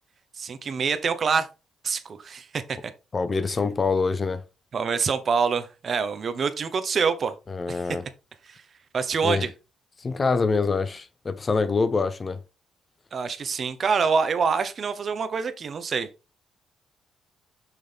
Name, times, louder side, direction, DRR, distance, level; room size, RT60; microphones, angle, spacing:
voice 1, 0.4-1.5 1.8-2.9 4.7-7.3 7.7-7.8 8.5-8.6 8.9-9.5 13.1-16.1, right 5 dB, 45° right, 1.0 m, -26 dB
voice 2, 3.1-4.4 7.5-8.0 9.2-9.5 10.0-12.4, left 4 dB, 35° left, 0.7 m, -25 dB
6.2 x 5.9 x 3.5 m
cardioid pair, 90°, 0 cm